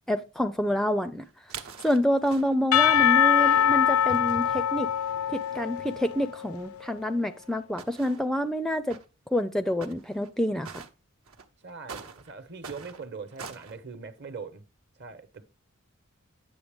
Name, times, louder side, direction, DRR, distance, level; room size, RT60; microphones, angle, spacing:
voice 1, 0.1-1.2 1.8-4.9 5.3-9.0 9.3-10.8, equal, ahead, 0.4 m, -27 dB
sound 1, 1.2-2.8 3.4-4.3 5.1-5.2 5.3-5.4 6.5-6.6 7.3-8.5 8.9-9.0 9.8-10.3 10.6-10.9 11.3-13.8, right 6 dB, 75° right, 1.1 m, -44 dB
Percussion / Church bell, 2.7-6.7, left 9 dB, 80° left, 0.4 m, -23 dB
voice 2, 11.6-14.6 15.0-15.4, right 5 dB, 55° right, 1.1 m, -41 dB
9.5 x 7.4 x 3.6 m
head